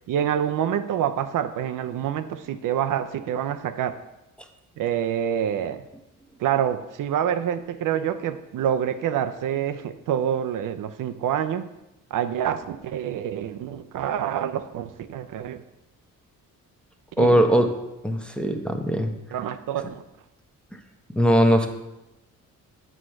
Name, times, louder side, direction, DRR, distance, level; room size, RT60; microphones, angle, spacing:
voice 1, 0.1-4.0 4.8-5.8 6.4-11.7 12.1-15.6 17.2-17.3 19.3-20.0, right 9 dB, 70° right, 9 dB, 0.6 m, -27 dB
voice 2, 17.2-17.7 18.0-19.1 21.2-21.7, equal, 5° left, 3 dB, 0.8 m, -19 dB
6.3 x 4.5 x 6.4 m, 0.95 s
cardioid pair, 90°, 33 cm